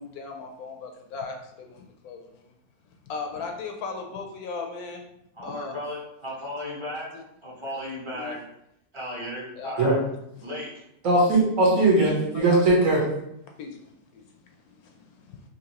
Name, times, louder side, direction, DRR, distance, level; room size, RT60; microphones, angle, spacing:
voice 1, 0.0-2.5 3.1-5.0 5.4-5.8 7.1-7.2 8.1-8.4 9.6-9.8 12.3-12.6 13.6-15.5, left 4 dB, 75° left, 3 dB, 1.0 m, -38 dB
voice 2, 5.3-7.1 7.4-8.4 8.9-10.0 10.4-10.8, left 1 dB, 20° right, -7 dB, 0.9 m, -35 dB
voice 3, 11.0-13.0, right 2 dB, 60° right, -3 dB, 1.3 m, -19 dB
3.7 x 2.9 x 2.9 m, 0.79 s
omnidirectional pair, 1.7 m